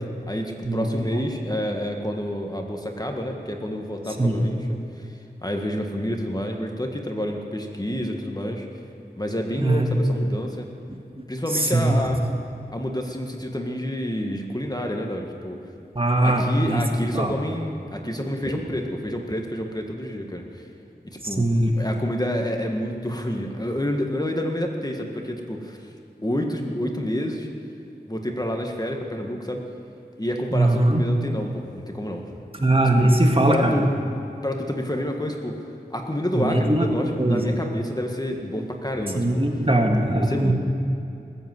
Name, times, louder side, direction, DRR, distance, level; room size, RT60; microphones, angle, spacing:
voice 1, 0.3-4.7 5.0-5.1 5.4-8.7 9.2-10.7 11.3-12.2 12.7-15.6 16.2-20.7 21.2-21.5 21.8-25.8 26.2-27.5 28.1-29.7 30.2-32.3 33.0-33.1 33.5-33.9 34.4-35.6 35.9-39.4 40.2-40.5, equal, 20° left, 2 dB, 1.6 m, -28 dB
voice 2, 9.6-9.9 11.5-12.0 16.0-16.8 17.1-17.3 18.5-18.6 21.2-21.8 30.5-31.0 32.5-33.9 36.4-36.9 37.2-37.6 39.2-40.5, right 1 dB, 30° right, 2 dB, 1.7 m, -21 dB
19.5 x 8.0 x 7.7 m, 2.7 s
wide cardioid pair, 45°, 18 cm